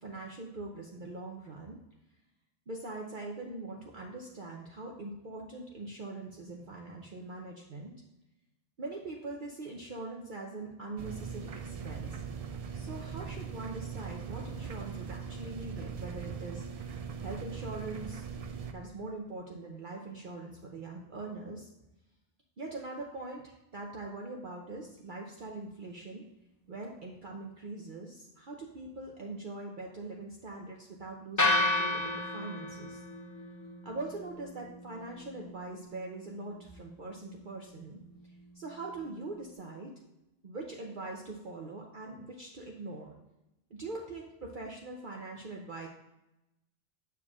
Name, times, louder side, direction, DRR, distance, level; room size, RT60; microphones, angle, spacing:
voice 1, 0.0-1.8 2.7-7.9 8.8-12.2 12.7-16.9 17.2-18.3 18.7-21.7 22.6-26.2 26.7-33.0 33.8-38.0 38.5-39.9 40.4-43.1 43.7-45.9, right 2 dB, 50° right, -1 dB, 0.8 m, -42 dB
sound 1, 11.0-18.7, right 6 dB, 70° right, 0.3 m, -40 dB
sound 2, 31.4-39.5, left 2 dB, 25° left, 0.4 m, -35 dB
7.0 x 6.8 x 2.4 m, 0.92 s
omnidirectional pair, 1.2 m